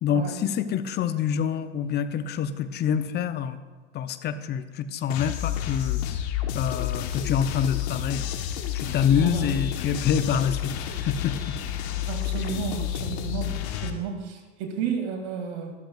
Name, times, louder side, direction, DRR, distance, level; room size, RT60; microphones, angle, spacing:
voice 1, 0.0-3.6 3.9-8.2 8.7-11.6 12.4-12.5, left 8 dB, 30° left, 12 dB, 0.6 m, -26 dB
sound 1, 5.1-13.9, left 10 dB, 65° left, 1.1 m, -30 dB
voice 2, 9.2-9.5 12.1-15.7, right 6 dB, 60° right, 3 dB, 2.2 m, -32 dB
13.0 x 13.0 x 2.3 m, 1.3 s
hypercardioid pair, 100°, 35 cm